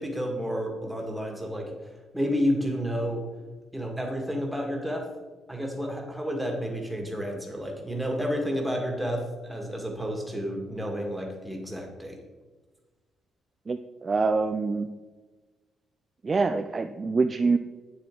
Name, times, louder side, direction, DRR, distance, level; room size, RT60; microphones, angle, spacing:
voice 1, 0.0-3.2 3.7-5.1 5.5-12.2, equal, 5° right, 1 dB, 1.8 m, -30 dB
voice 2, 13.7-14.9 16.2-17.6, right 4 dB, 30° right, 7 dB, 0.4 m, -25 dB
8.8 x 7.7 x 3.8 m, 1.3 s
cardioid pair, 125°, 0 cm